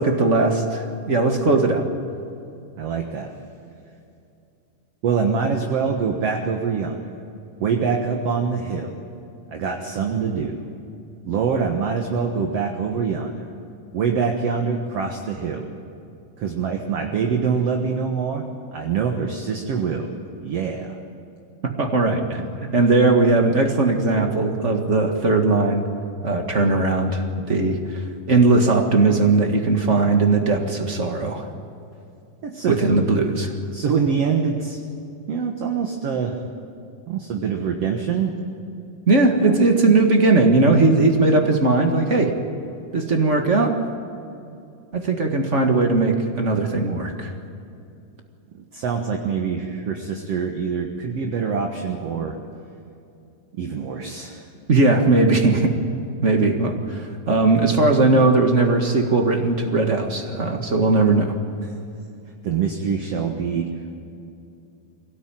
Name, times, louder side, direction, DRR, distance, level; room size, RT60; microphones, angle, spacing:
voice 1, 0.0-1.8 21.8-22.5 22.7-25.8 26.2-28.0 28.3-31.4 32.7-33.5 39.1-42.3 42.9-43.8 44.9-47.3 54.7-55.7 56.2-61.3, right 3 dB, 40° right, 4 dB, 1.1 m, -19 dB
voice 2, 2.8-3.3 5.0-7.1 7.6-9.0 9.5-10.6 11.3-13.5 13.9-15.7 16.4-18.4 18.7-20.1 20.4-20.9 32.4-33.0 33.7-34.8 35.3-36.4 37.1-38.3 39.4-39.6 48.5-52.4 53.6-54.5 61.6-61.7 62.4-63.7, right 6 dB, 55° right, 3 dB, 2.1 m, -24 dB
23.5 x 17.5 x 9.1 m, 2.6 s
omnidirectional pair, 3.9 m